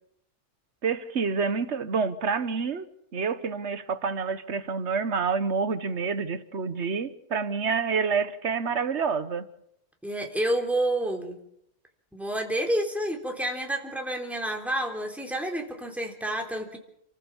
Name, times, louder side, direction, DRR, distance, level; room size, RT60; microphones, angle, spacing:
voice 1, 0.8-2.9 3.1-9.5, right 5 dB, 60° right, 1.5 m, -28 dB
voice 2, 10.0-11.4 12.1-16.8, right 1 dB, ahead, 3.5 m, -29 dB
29.5 x 15.0 x 7.2 m
omnidirectional pair, 1.4 m